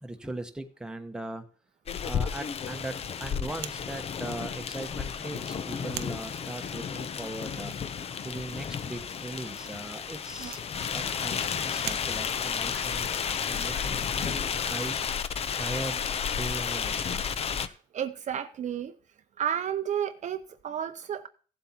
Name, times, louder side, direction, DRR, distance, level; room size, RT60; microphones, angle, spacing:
voice 1, 0.0-1.4 2.0-7.7 8.2-10.6 10.9-15.0 15.6-16.0 16.4-17.2, right 1 dB, 5° right, 1.0 m, -39 dB
sound 1, 1.9-17.7, left 7 dB, 35° left, 0.6 m, -32 dB
sound 2, 3.6-12.6, right 15 dB, 85° right, 0.5 m, -46 dB
voice 2, 17.6-19.0 19.4-21.3, right 9 dB, 45° right, 0.6 m, -32 dB
15.5 x 7.7 x 2.9 m
cardioid pair, 110°, 17 cm